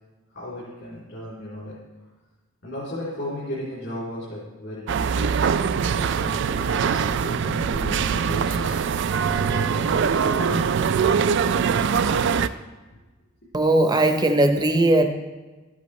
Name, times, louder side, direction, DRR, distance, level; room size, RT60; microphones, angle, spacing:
voice 1, 0.3-1.8 2.6-5.6 5.9-10.7 11.1-12.3, left 1 dB, 60° left, -10 dB, 3.2 m, -35 dB
sound 1, 4.9-12.5, right 6 dB, 60° right, 0.3 m, -22 dB
voice 2, 13.5-15.0, right 1 dB, 20° right, 6 dB, 0.7 m, -18 dB
13.0 x 8.3 x 3.1 m, 1.2 s
head